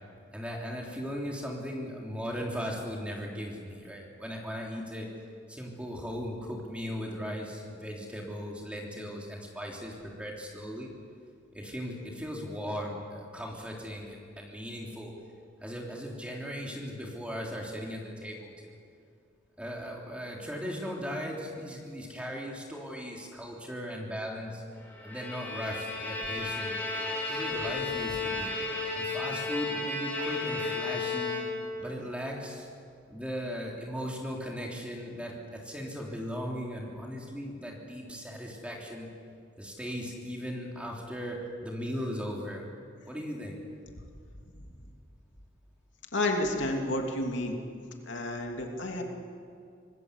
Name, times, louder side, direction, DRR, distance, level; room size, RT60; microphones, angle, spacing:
voice 1, 0.3-5.1 5.5-10.9 11.5-15.1 15.6-18.8 19.6-24.6 25.0-26.8 27.2-28.5 28.9-31.3 31.8-32.7 33.1-39.1 39.6-42.6 43.1-43.6, equal, 5° right, -2 dB, 3.4 m, -38 dB
Bowed string instrument, 24.9-31.9, left 3 dB, 10° left, 4.8 m, -33 dB
voice 2, 46.1-47.6 48.1-49.0, left 1 dB, 85° left, 2 dB, 2.8 m, -30 dB
25.5 x 20.0 x 8.2 m, 2.3 s
head